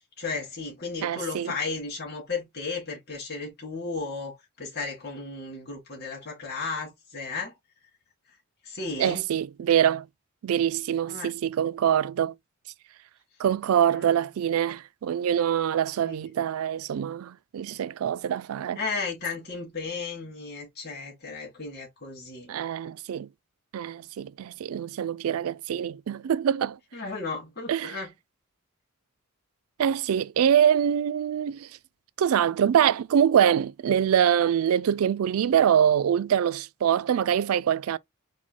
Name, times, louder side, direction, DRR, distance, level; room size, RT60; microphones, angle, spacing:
voice 1, 0.2-7.5 8.7-9.2 11.1-11.3 13.9-14.1 16.1-16.2 18.8-22.5 26.9-28.1, left 4 dB, 50° left, 2.1 m, -34 dB
voice 2, 1.0-1.5 9.0-10.1 10.4-12.3 13.4-18.8 22.5-23.3 23.7-26.8 27.7-28.0 29.8-31.7 32.2-38.0, right 9 dB, 80° right, 0.3 m, -24 dB
4.3 x 2.1 x 4.5 m
head